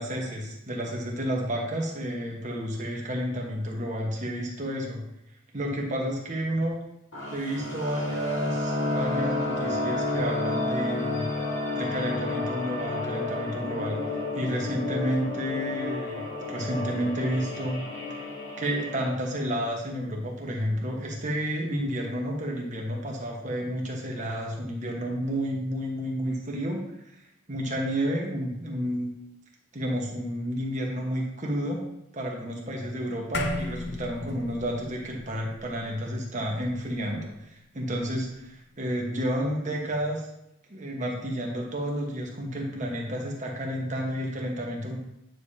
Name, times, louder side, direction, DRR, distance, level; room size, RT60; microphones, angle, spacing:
voice 1, 0.0-5.0 5.5-6.7 7.3-11.3 11.7-14.0 14.3-16.2 16.5-17.8 18.6-26.8 27.5-29.1 29.7-31.8 32.1-40.3 40.7-45.0, equal, 35° right, -1 dB, 1.2 m, -31 dB
sound 1, 7.1-19.1, left 2 dB, 75° left, 2.0 m, -31 dB
sound 2, 33.3-38.0, left 2 dB, 55° left, 0.6 m, -37 dB
9.2 x 5.0 x 2.8 m, 0.84 s
head